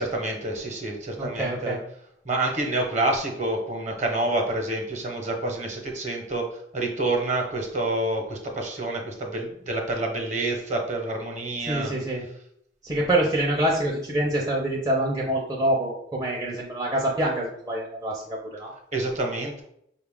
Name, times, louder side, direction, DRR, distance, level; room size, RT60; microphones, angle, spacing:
voice 1, 0.0-1.8 2.2-11.9 18.9-19.6, right 2 dB, 40° right, 2 dB, 0.9 m, -28 dB
voice 2, 1.2-1.8 11.7-12.2 12.8-18.7, right 1 dB, 20° right, -3 dB, 0.5 m, -26 dB
5.1 x 2.4 x 3.5 m, 0.73 s
head